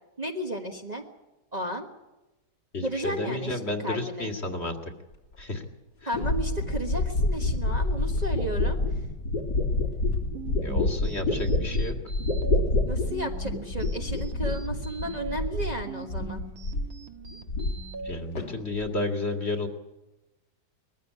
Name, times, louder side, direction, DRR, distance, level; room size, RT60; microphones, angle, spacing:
voice 1, 0.2-1.0 1.5-1.9 2.8-4.3 6.1-8.8 12.8-16.4, equal, 25° right, 2 dB, 1.5 m, -33 dB
voice 2, 2.7-4.8 5.4-5.7 10.6-11.9 18.0-19.7, left 2 dB, 40° left, 4 dB, 2.3 m, -31 dB
sound 1, 5.4-5.5 6.1-15.8 16.1-17.0 17.3-18.1 18.4-18.9, left 2 dB, 75° left, 3.6 m, -27 dB
sound 2, 9.8-18.1, right 4 dB, 55° right, 1.9 m, -41 dB
21.5 x 15.0 x 9.6 m, 1.0 s
omnidirectional pair, 1.9 m